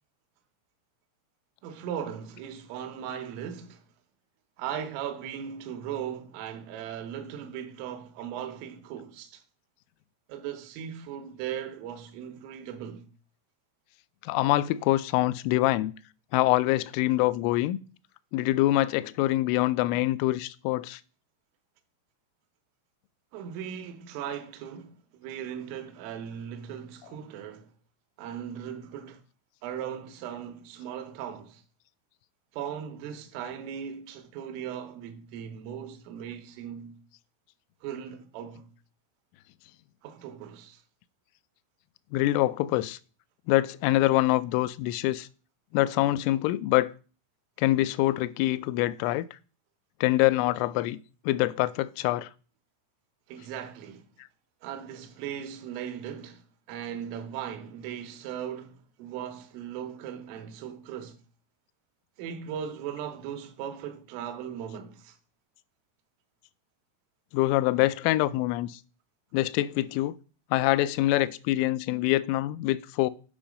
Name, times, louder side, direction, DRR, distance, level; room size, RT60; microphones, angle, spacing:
voice 1, 1.6-3.8 4.6-9.4 10.3-13.1 23.3-27.7 28.2-29.2 29.6-31.6 32.5-37.0 37.8-38.7 40.0-40.8 53.3-54.1 54.6-56.4 56.7-61.2 62.2-65.2, right 9 dB, 80° right, 3.5 m, -38 dB
voice 2, 14.2-15.9 16.3-17.8 18.3-21.0 42.1-43.0 43.5-45.3 45.7-46.9 47.6-49.3 50.0-51.0 51.3-52.3 67.3-68.8 69.3-70.1 70.5-73.1, left 16 dB, 85° left, 3.1 m, -25 dB
8.8 x 5.5 x 5.1 m
omnidirectional pair, 5.8 m